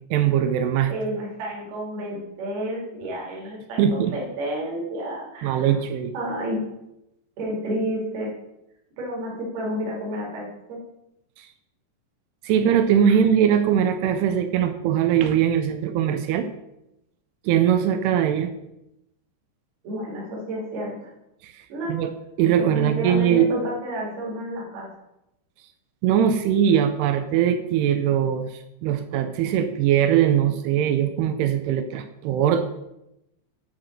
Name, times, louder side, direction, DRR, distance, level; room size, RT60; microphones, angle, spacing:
voice 1, 0.1-0.9 3.8-4.2 5.4-6.1 11.4-11.5 12.4-16.5 17.5-18.5 21.4-21.6 21.9-22.1 22.4-23.5 26.0-32.6, right 9 dB, 90° right, 8 dB, 2.3 m, -21 dB
voice 2, 0.9-5.8 6.1-6.6 7.4-8.3 9.0-10.8 19.8-21.1 21.7-22.0 22.6-24.9, equal, 60° right, -3 dB, 4.3 m, -30 dB
10.0 x 4.0 x 6.4 m, 0.86 s
omnidirectional pair, 5.3 m